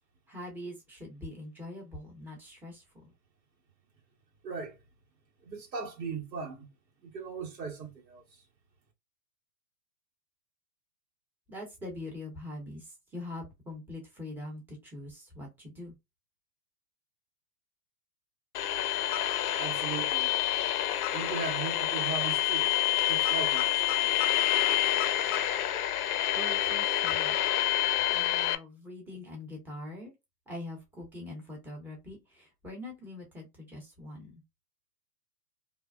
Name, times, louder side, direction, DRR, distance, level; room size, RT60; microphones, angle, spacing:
voice 1, 0.3-3.1 11.5-15.9 26.3-27.4 28.1-30.1 30.5-34.4, left 1 dB, 5° right, 0.7 m, -43 dB
voice 2, 4.4-4.8 5.4-6.7 7.0-8.2 19.6-20.4 21.1-22.7 23.1-24.1, right 5 dB, 85° right, 1.3 m, -38 dB
sound 1, 18.5-28.6, left 14 dB, 60° left, 0.5 m, -28 dB
2.5 x 2.1 x 2.3 m
hypercardioid pair, 125°, 49 cm